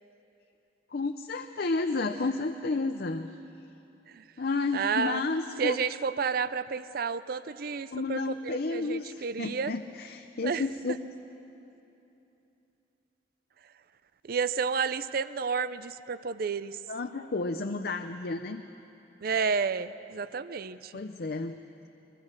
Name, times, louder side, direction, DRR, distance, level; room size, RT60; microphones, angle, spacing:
voice 1, 0.9-3.3 4.4-5.8 7.9-11.0 16.9-18.6 20.9-21.6, left 3 dB, 60° left, 7 dB, 0.6 m, -31 dB
voice 2, 4.7-5.2 5.6-9.7 10.4-10.6 14.2-16.8 19.2-20.9, right 5 dB, 55° right, 14 dB, 0.5 m, -31 dB
22.5 x 22.5 x 6.5 m, 2.9 s
head